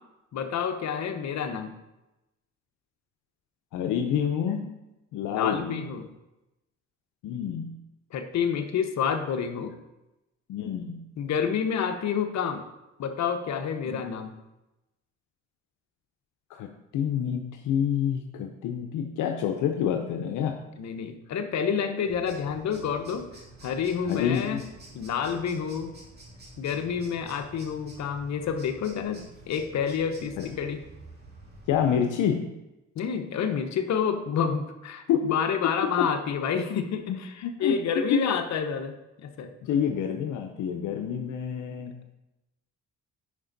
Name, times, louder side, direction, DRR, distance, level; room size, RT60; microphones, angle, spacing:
voice 1, 0.3-1.7 5.3-6.1 8.1-9.7 11.2-12.6 13.0-14.3 20.8-23.3 23.6-24.6 24.9-25.9 26.6-30.8 33.0-38.9 39.2-39.5, left 7 dB, 65° left, 6 dB, 1.0 m, -29 dB
voice 2, 3.7-4.7 5.1-5.9 7.2-7.8 10.5-11.1 13.9-14.0 16.5-20.6 24.1-24.6 30.4-30.5 31.7-32.6 35.1-35.3 36.0-36.1 36.7-36.8 37.1-37.8 38.1-38.2 39.6-41.9, left 8 dB, 85° left, 5 dB, 0.7 m, -28 dB
sound 1, 22.0-31.9, right 1 dB, 35° right, 2.8 m, -49 dB
9.7 x 5.1 x 4.0 m, 0.97 s
cardioid pair, 90°, 30 cm